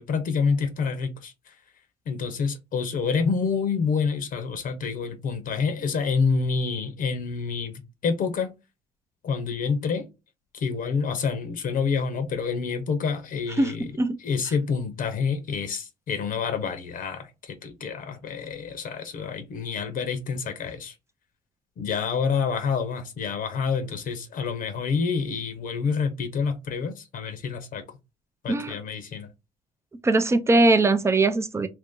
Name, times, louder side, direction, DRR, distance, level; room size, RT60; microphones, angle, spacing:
voice 1, 0.0-1.5 2.1-8.5 9.2-10.1 10.5-13.8 14.2-20.9 21.8-27.8 28.4-29.3, left 5 dB, 55° left, 0.8 m, -28 dB
voice 2, 13.6-14.2 28.5-28.7 30.0-31.7, right 2 dB, 15° right, 0.5 m, -21 dB
2.8 x 2.7 x 3.7 m
cardioid pair, 110°, 17 cm